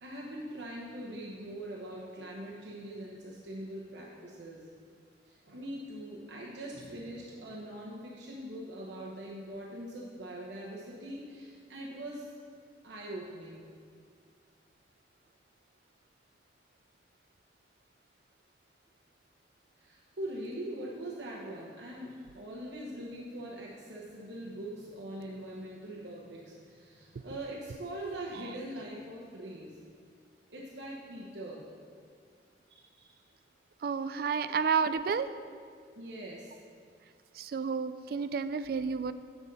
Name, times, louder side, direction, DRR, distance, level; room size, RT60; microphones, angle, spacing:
voice 1, 0.0-4.7 5.2-12.3 12.8-13.6 19.8-29.8 30.5-31.6 32.7-33.0 34.4-34.6 35.9-36.5, right 1 dB, 80° right, -4 dB, 1.0 m, -42 dB
voice 2, 33.8-35.3 37.4-39.1, right 5 dB, 55° right, 12 dB, 0.3 m, -30 dB
8.0 x 6.3 x 5.4 m, 2.1 s
head